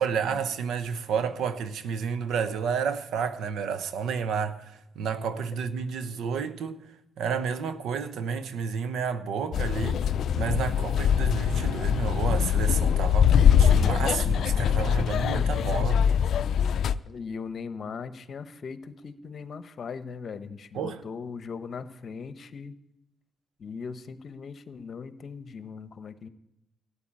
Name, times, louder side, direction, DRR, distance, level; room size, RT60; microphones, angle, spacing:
voice 1, 0.0-10.0 10.3-16.1 20.7-21.0, right 6 dB, 75° right, 1.0 m, -31 dB
sound 1, 9.5-16.9, left 8 dB, 65° left, 0.5 m, -23 dB
voice 2, 17.1-22.7 23.6-26.3, left 5 dB, 50° left, 1.0 m, -39 dB
13.5 x 8.9 x 8.9 m
cardioid pair, 90°, 0 cm